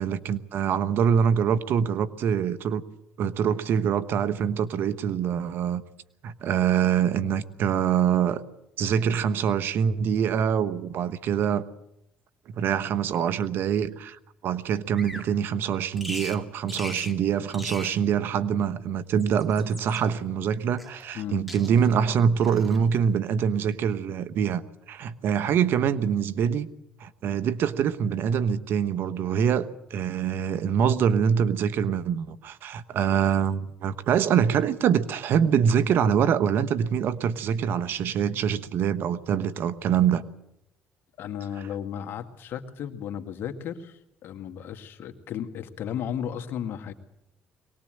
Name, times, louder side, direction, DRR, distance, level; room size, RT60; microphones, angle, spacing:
voice 1, 0.0-2.8 3.2-5.8 6.2-8.4 8.8-11.6 12.5-24.6 24.9-26.7 27.0-40.2, right 8 dB, 65° right, 13 dB, 1.2 m, -24 dB
Bird vocalization bird call bird song, 14.9-15.3 16.0-16.4 16.7-17.2 17.5-18.0 19.0-20.0 20.8-21.2 21.5-22.0 22.4-22.8, left 1 dB, ahead, 2.5 m, -39 dB
voice 2, 21.1-21.5 41.2-46.9, left 9 dB, 65° left, 7 dB, 2.1 m, -34 dB
23.0 x 19.5 x 7.8 m, 0.85 s
supercardioid pair, 85°, 4 cm